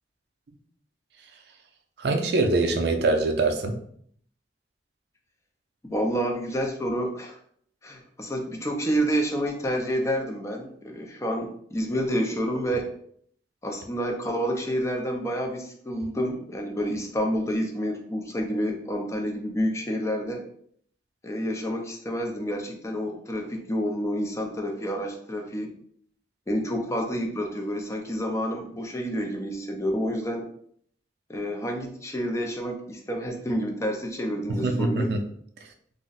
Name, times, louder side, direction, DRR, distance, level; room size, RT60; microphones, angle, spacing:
voice 1, 2.0-3.8 34.5-35.2, right 3 dB, 65° right, 5 dB, 0.4 m, -24 dB
voice 2, 5.8-7.4 7.8-12.9 13.6-20.4 21.2-25.7 26.5-30.5 31.3-35.1, equal, 15° left, 2 dB, 0.4 m, -29 dB
2.5 x 2.0 x 3.8 m, 0.63 s
head